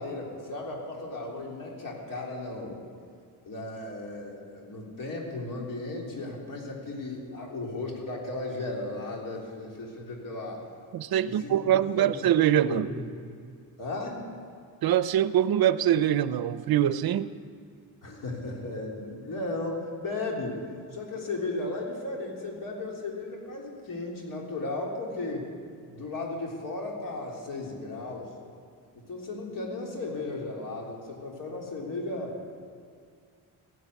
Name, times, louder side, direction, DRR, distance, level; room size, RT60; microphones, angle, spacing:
voice 1, 0.0-2.8 3.4-10.6 11.2-12.3 12.7-13.0 13.8-14.2 18.0-20.6 20.9-25.5 25.9-28.3 28.9-32.5, left 2 dB, 55° left, -1 dB, 3.9 m, -35 dB
voice 2, 10.9-12.9 14.8-17.3, right 11 dB, 65° right, 15 dB, 0.6 m, -24 dB
15.5 x 11.0 x 8.3 m, 2.2 s
cardioid pair, 110°, 40 cm